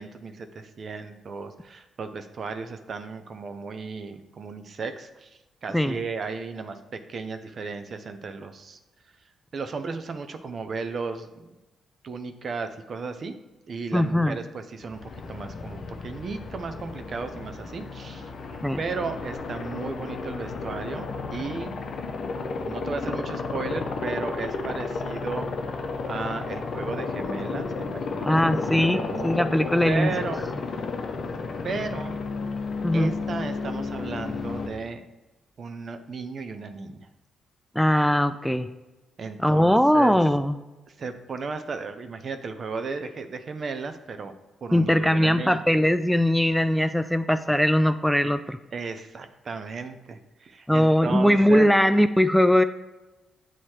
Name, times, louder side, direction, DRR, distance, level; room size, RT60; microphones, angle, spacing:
voice 1, 0.0-8.8 9.5-11.5 12.0-13.4 13.7-15.0 15.3-21.7 22.5-29.4 29.8-30.4 31.6-32.2 32.9-35.0 35.6-37.1 39.2-40.2 40.9-44.3 44.6-45.6 48.7-51.7, right 4 dB, 55° right, 8 dB, 0.7 m, -35 dB
voice 2, 13.9-14.4 18.6-18.8 28.3-30.1 32.8-33.1 37.8-38.7 39.4-40.6 44.7-48.6 50.7-52.6, equal, ahead, 10 dB, 0.4 m, -20 dB
Aircraft, 14.8-34.7, left 4 dB, 60° left, 0.7 m, -32 dB
7.8 x 3.1 x 4.3 m, 1.1 s
supercardioid pair, 60°, 0 cm